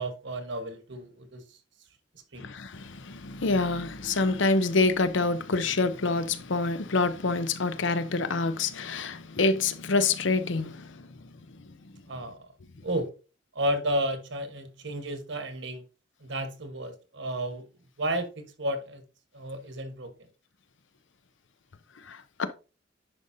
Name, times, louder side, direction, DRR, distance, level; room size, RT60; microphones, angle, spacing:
voice 1, 0.0-1.6 2.3-2.5 12.1-12.5 12.8-13.1 13.5-15.8 16.2-17.7 18.0-19.0 19.3-20.3, right 1 dB, 65° right, 1.3 m, -32 dB
voice 2, 2.4-11.0 22.1-22.5, left 3 dB, 70° left, 0.7 m, -27 dB
10.0 x 5.3 x 2.7 m
head